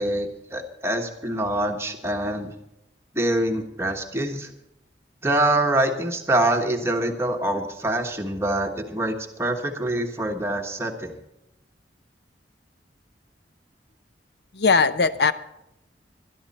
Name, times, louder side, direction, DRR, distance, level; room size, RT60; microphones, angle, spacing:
voice 1, 0.0-2.5 3.1-4.5 5.2-11.2, right 1 dB, 15° right, 3 dB, 1.2 m, -25 dB
voice 2, 14.5-15.3, left 4 dB, 65° left, 12 dB, 0.7 m, -19 dB
20.5 x 11.5 x 4.2 m, 0.87 s
head